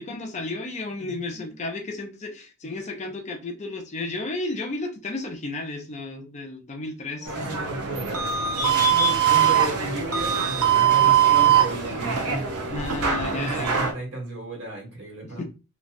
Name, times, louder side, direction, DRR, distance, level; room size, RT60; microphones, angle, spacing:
voice 1, 0.0-7.3 8.7-8.8 12.7-13.7 15.2-15.4, left 2 dB, 30° left, 0.5 m, -33 dB
voice 2, 7.2-12.5 13.3-15.4, right 1 dB, 60° right, 1.4 m, -34 dB
sound 1, 7.3-13.9, right 8 dB, 80° right, 0.8 m, -22 dB
3.1 x 2.4 x 2.4 m
head